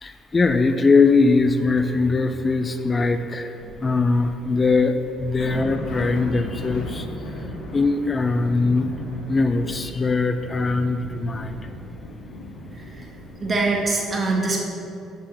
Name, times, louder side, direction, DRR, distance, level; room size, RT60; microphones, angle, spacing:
voice 1, 0.0-7.1 7.4-7.5 7.7-8.9 9.3-11.6, left 3 dB, 30° left, 8 dB, 0.5 m, -21 dB
sound 1, 4.7-4.8 5.1-13.8, equal, 75° left, 1.7 m, -36 dB
voice 2, 13.4-14.6, right 3 dB, 35° right, -1 dB, 1.7 m, -23 dB
5.9 x 5.7 x 5.5 m, 2.7 s
hypercardioid pair, 60°, 0 cm